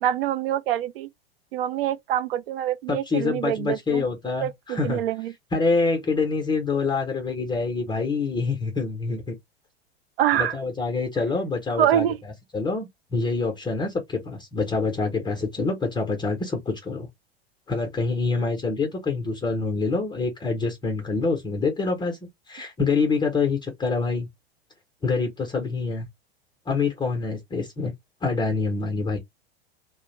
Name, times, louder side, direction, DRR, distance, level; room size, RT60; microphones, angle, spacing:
voice 1, 0.0-1.1 1.5-4.0 4.4-5.3 10.2-10.5 11.2-11.3 11.8-12.2, right 11 dB, 65° right, 0.5 m, -25 dB
voice 2, 2.9-5.0 5.5-9.3 10.3-12.1 12.5-17.1 17.7-22.2 22.5-24.3 25.0-26.1 26.7-27.9 28.2-29.2, left 4 dB, 15° left, 0.6 m, -26 dB
2.3 x 2.1 x 3.0 m
figure-of-eight pair, 90°, 32 cm